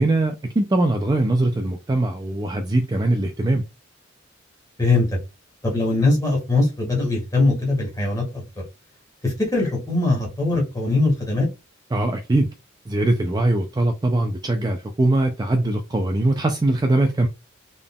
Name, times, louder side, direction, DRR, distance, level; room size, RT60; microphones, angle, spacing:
voice 1, 0.0-3.6 11.9-12.5 12.9-17.3, right 2 dB, 20° right, 0.4 m, -21 dB
voice 2, 4.8-5.2 5.6-8.4 9.2-11.5, left 2 dB, 15° left, 1.7 m, -21 dB
3.8 x 3.5 x 2.3 m
head